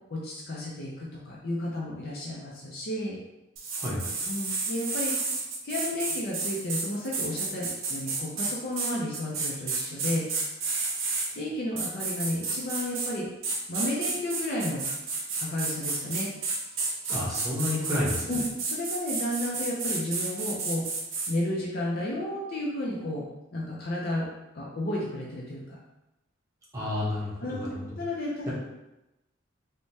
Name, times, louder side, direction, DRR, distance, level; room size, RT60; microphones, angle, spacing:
voice 1, 0.1-3.2 4.3-5.1 5.6-10.3 11.3-13.3 13.7-14.9 15.4-16.3 18.2-20.9 21.3-23.3 23.5-24.3 24.5-25.8 27.4-27.7 28.0-28.5, left 1 dB, 50° left, -4 dB, 0.5 m, -32 dB
sound 1, 3.6-11.3 11.8-13.1 13.4-21.3, right 3 dB, 85° right, 0.6 m, -31 dB
voice 2, 3.8-4.2 17.1-18.3 26.7-27.9, left 1 dB, 15° right, -8 dB, 0.7 m, -30 dB
3.3 x 2.1 x 2.7 m, 0.95 s
head